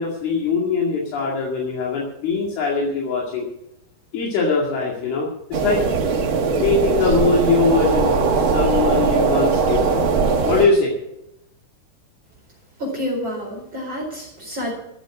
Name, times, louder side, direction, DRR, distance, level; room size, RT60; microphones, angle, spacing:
voice 1, 0.0-3.5 4.1-5.8 6.6-9.9 10.4-10.9, left 4 dB, 75° left, -2 dB, 4.2 m, -21 dB
sound 1, 5.5-10.7, right 5 dB, 70° right, 1.2 m, -20 dB
voice 2, 12.8-14.7, left 1 dB, 30° right, -3 dB, 4.8 m, -28 dB
13.5 x 7.7 x 8.4 m, 0.83 s
omnidirectional pair, 4.6 m